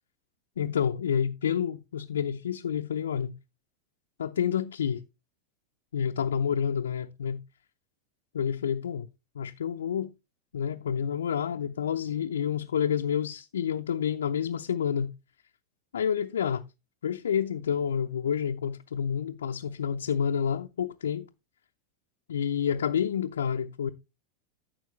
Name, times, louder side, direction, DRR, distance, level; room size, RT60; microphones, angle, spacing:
voice 1, 0.6-3.3 4.2-5.0 5.9-7.4 8.3-9.1 9.3-10.1 10.5-15.1 15.9-16.6 17.0-21.3 22.3-23.9, left 8 dB, 75° left, 0.6 m, -29 dB
13.5 x 6.2 x 3.2 m
figure-of-eight pair, 90°, 0 cm